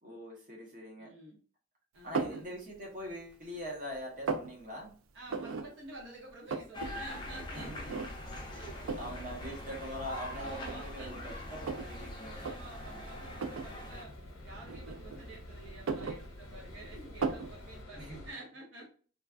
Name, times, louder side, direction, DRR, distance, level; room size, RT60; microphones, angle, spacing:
voice 1, 0.0-1.1 2.0-4.9 7.5-8.0 8.5-8.6 8.9-12.4 18.0-18.2, equal, 40° right, -2 dB, 0.9 m, -43 dB
voice 2, 1.0-1.4 1.9-2.5 5.1-8.0 8.5-9.0 10.3-11.6 12.4-14.2 14.4-18.9, right 2 dB, 60° right, -3 dB, 0.7 m, -50 dB
sound 1, 2.1-2.5 3.0-3.6 3.9-4.5 5.3-5.7 6.0-6.1 6.3-6.9 7.2-7.3 7.9-8.4 8.9-9.1 10.0-10.1 10.6-11.9 12.3-12.6 13.3-13.7 14.7-15.3 15.7-16.7 17.2-17.5, right 4 dB, 85° right, 0.4 m, -35 dB
sound 2, 6.7-14.0, left 1 dB, 25° left, 0.5 m, -45 dB
sound 3, 6.8-18.3, left 1 dB, 85° left, 0.7 m, -47 dB
3.1 x 2.2 x 2.4 m, 0.41 s
head